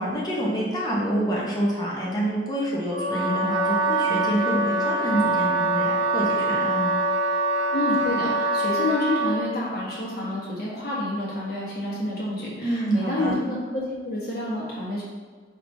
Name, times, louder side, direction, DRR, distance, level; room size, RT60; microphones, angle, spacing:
voice 1, 0.0-6.9 12.6-13.3, right 1 dB, 20° left, -5 dB, 0.8 m, -27 dB
Wind instrument woodwind instrument, 2.9-9.4, right 2 dB, 80° left, 1.3 m, -24 dB
voice 2, 7.7-15.0, left 2 dB, 55° left, -7 dB, 1.3 m, -28 dB
4.5 x 2.9 x 2.7 m, 1.5 s
head